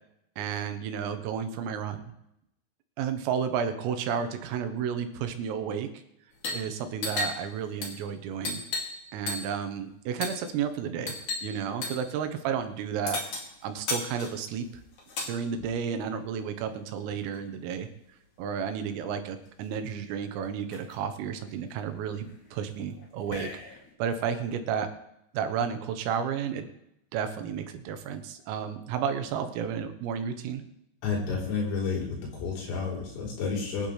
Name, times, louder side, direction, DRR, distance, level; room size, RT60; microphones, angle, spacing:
voice 1, 0.4-2.0 3.0-5.9 6.5-8.6 9.1-13.2 13.6-14.7 15.3-17.9 18.4-23.5 24.0-24.9 25.3-26.7 27.1-30.6, right 7 dB, 85° right, 7 dB, 3.9 m, -32 dB
sound 1, 6.3-6.7 6.9-9.0 9.3-9.6 10.2-10.4 11.1-11.5 11.8-12.1 13.1-15.3 16.4-17.5 18.7-18.8 19.0-19.6 20.1-20.2 20.4-20.9 21.5-23.9, left 3 dB, 45° left, 3.5 m, -36 dB
voice 2, 31.0-33.9, left 5 dB, 85° left, -4 dB, 6.5 m, -30 dB
23.0 x 11.0 x 3.3 m, 0.82 s
omnidirectional pair, 5.8 m